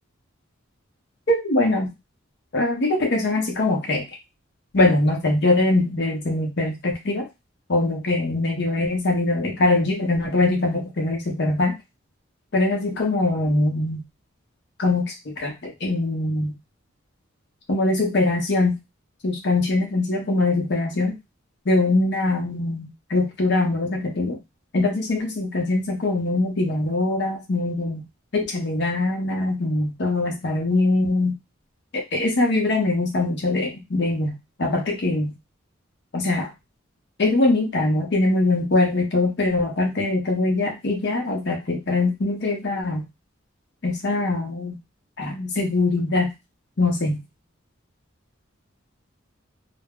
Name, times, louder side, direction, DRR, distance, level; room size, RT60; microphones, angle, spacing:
voice 1, 1.3-1.9 2.5-4.0 4.7-7.3 7.7-11.8 12.5-14.0 14.8-16.5 17.7-18.8 19.2-21.2 21.7-24.4 24.7-28.0 28.3-31.3 31.9-35.3 36.1-36.5 37.2-43.1 43.8-44.8 45.2-46.3 46.8-47.2, left 2 dB, 55° left, 1 dB, 0.6 m, -22 dB
2.3 x 2.0 x 3.4 m, 0.23 s
head